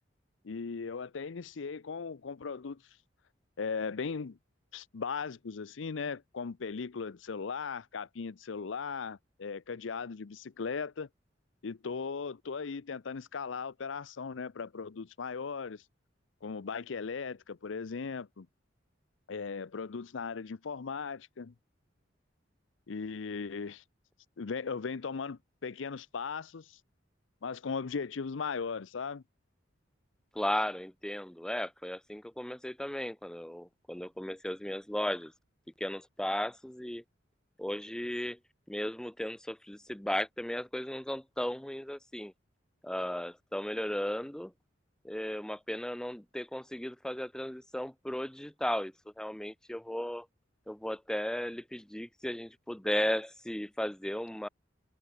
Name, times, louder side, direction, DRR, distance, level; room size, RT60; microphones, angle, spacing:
voice 1, 0.4-2.8 3.6-4.4 4.7-11.1 11.6-15.8 16.4-18.5 19.3-21.5 22.9-23.8 24.4-26.8 27.4-29.2, left 5 dB, 85° left, 0.6 m, -38 dB
voice 2, 30.3-35.3 35.8-37.0 37.6-38.4 38.7-42.3 42.8-44.5 45.0-50.3 50.7-54.5, left 1 dB, 5° left, 0.4 m, -35 dB
head